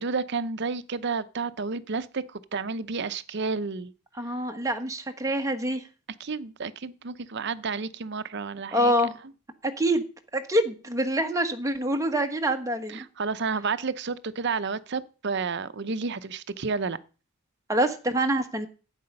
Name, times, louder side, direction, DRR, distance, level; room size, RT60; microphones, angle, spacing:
voice 1, 0.0-3.9 6.2-8.9 12.9-17.0, right 4 dB, 55° right, 0.7 m, -31 dB
voice 2, 4.2-5.8 8.7-9.1 9.6-10.0 10.3-13.0 17.7-18.7, right 1 dB, 15° right, 1.3 m, -26 dB
12.0 x 8.8 x 5.4 m
head